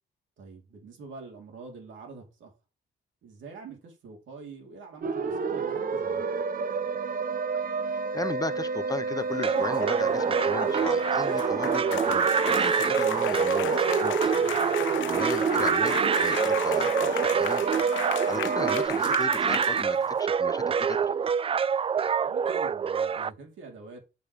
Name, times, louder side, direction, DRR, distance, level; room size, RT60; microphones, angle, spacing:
voice 1, 0.4-2.5 3.2-6.2 12.9-13.2 14.4-14.6 15.0-15.2 18.3-18.5 22.2-24.0, right 4 dB, 75° right, 3.7 m, -46 dB
sound 1, 5.0-18.9, right 5 dB, 45° right, 0.9 m, -30 dB
voice 2, 7.8-14.3 15.1-17.6 18.3-21.1, left 3 dB, 20° left, 0.6 m, -36 dB
sound 2, 9.2-20.2, left 14 dB, 75° left, 0.5 m, -36 dB
sound 3, 9.4-23.3, right 7 dB, 30° right, 0.3 m, -26 dB
6.8 x 6.7 x 4.8 m
cardioid pair, 90°, 20 cm